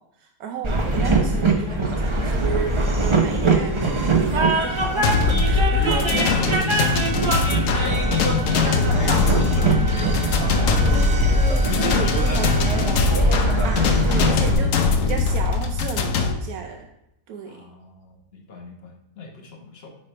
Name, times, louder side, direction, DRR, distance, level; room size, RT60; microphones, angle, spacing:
voice 1, 0.0-6.0 10.9-16.9 17.3-17.7, right 7 dB, 75° right, 3 dB, 1.1 m, -34 dB
Train, 0.6-14.5, right 2 dB, 45° right, 0.4 m, -22 dB
Trumpet, 4.5-12.9, right 4 dB, 25° right, 1.1 m, -36 dB
sound 1, 5.0-16.3, left 5 dB, 65° left, 0.9 m, -22 dB
voice 2, 5.8-11.2 11.7-12.7 17.4-20.0, left 2 dB, 45° left, 1 dB, 1.1 m, -35 dB
9.7 x 3.3 x 4.3 m, 0.86 s
omnidirectional pair, 1.7 m